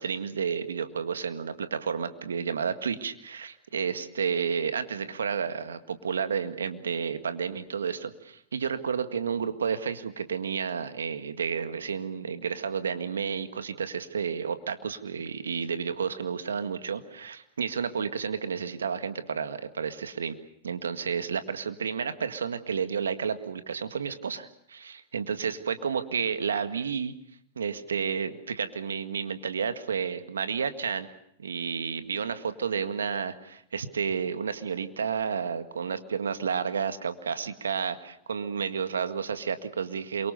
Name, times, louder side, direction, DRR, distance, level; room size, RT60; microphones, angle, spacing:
voice 1, 0.0-20.4 20.6-27.1 27.6-31.1 31.4-40.3, right 6 dB, 85° right, 9 dB, 1.9 m, -31 dB
28.0 x 23.5 x 6.7 m, 0.70 s
hypercardioid pair, 105°, 0 cm